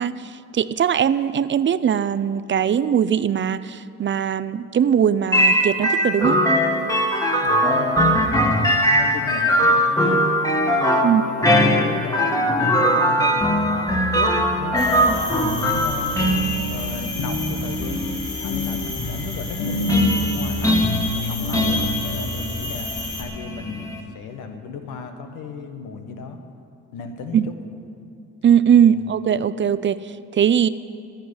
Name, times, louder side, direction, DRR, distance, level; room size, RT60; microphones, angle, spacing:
voice 1, 0.0-6.4 11.0-11.2 27.3-27.5 28.4-30.7, right 8 dB, 40° right, 15 dB, 0.5 m, -20 dB
sound 1, 5.3-24.0, equal, 10° left, 1.7 m, -21 dB
voice 2, 7.4-10.2 10.8-16.1 16.6-18.0 18.3-26.4 26.9-27.5 28.9-29.0, left 5 dB, 90° left, 6 dB, 1.4 m, -34 dB
sound 2, 14.8-23.2, left 3 dB, 50° left, 3.2 m, -33 dB
sound 3, 15.4-22.2, equal, 65° left, 2.6 m, -29 dB
11.5 x 9.4 x 9.6 m, 2.5 s
cardioid pair, 90°, 30 cm